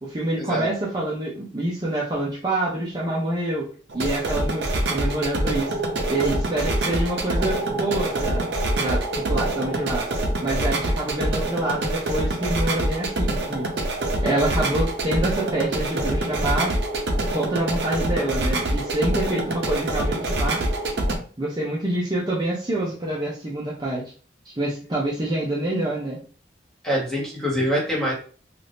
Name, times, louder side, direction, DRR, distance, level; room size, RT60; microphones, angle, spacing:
voice 1, 0.0-3.7 3.9-5.8 6.1-8.4 8.8-10.1 10.4-13.7 14.2-16.7 17.3-20.6 21.4-24.1 24.6-26.2, right 1 dB, 25° right, -5 dB, 0.6 m, -26 dB
sound 1, 3.9-21.2, right 1 dB, 70° right, 0.6 m, -25 dB
voice 2, 26.8-28.1, equal, 5° left, -5 dB, 1.0 m, -24 dB
2.6 x 2.5 x 3.4 m, 0.41 s
head